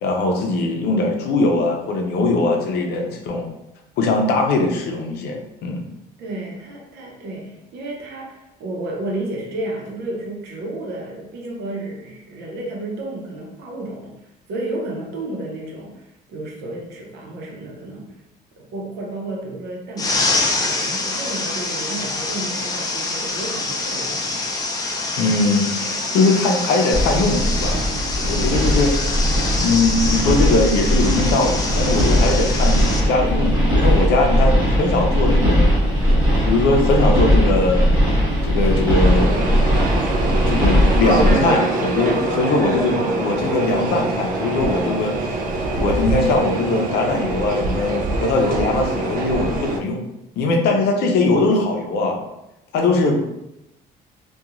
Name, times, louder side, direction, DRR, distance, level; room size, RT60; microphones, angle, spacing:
voice 1, 0.0-3.5 4.0-5.8 25.2-27.9 28.3-28.9 29.5-35.7 36.5-37.9 38.4-39.5 40.5-45.3 45.7-50.0 50.4-52.2 52.7-53.2, left 2 dB, 80° left, 2 dB, 0.6 m, -20 dB
voice 2, 6.2-18.1 18.6-24.6, right 2 dB, 75° right, -1 dB, 0.8 m, -32 dB
sound 1, 20.0-33.0, left 2 dB, 20° left, 0.4 m, -25 dB
sound 2, 26.9-41.3, equal, 25° right, 1.3 m, -18 dB
sound 3, 38.9-49.8, right 2 dB, 55° right, 0.4 m, -24 dB
2.9 x 2.3 x 2.4 m, 0.88 s
cardioid pair, 110°, 17 cm